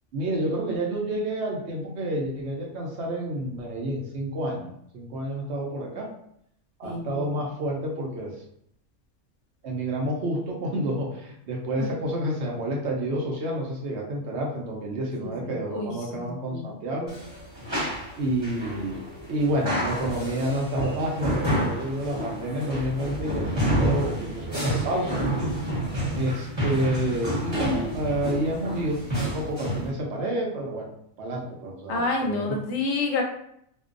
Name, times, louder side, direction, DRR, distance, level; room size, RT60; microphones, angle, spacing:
voice 1, 0.1-6.1 6.8-8.3 9.6-17.1 18.2-19.0 19.3-25.2 25.6-25.7 26.1-29.0 29.2-30.9 31.2-32.4, right 1 dB, 65° right, -1 dB, 0.9 m, -29 dB
voice 2, 6.8-7.4 11.8-11.9 15.0-16.7 31.9-33.2, left 3 dB, 70° left, 1 dB, 0.9 m, -29 dB
sound 1, 17.1-29.9, right 1 dB, 25° right, 0.8 m, -29 dB
2.5 x 2.2 x 2.4 m, 0.71 s
omnidirectional pair, 1.3 m